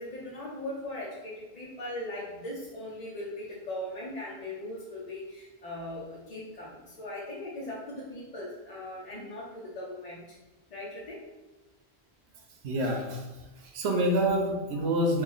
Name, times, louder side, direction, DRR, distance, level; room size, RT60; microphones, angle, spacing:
voice 1, 0.0-10.4 10.7-11.2, left 1 dB, 45° left, -6 dB, 0.6 m, -39 dB
voice 2, 12.6-13.3 13.6-15.2, right 1 dB, 90° right, 1 dB, 0.9 m, -27 dB
2.9 x 2.5 x 3.8 m, 1.1 s
omnidirectional pair, 1.1 m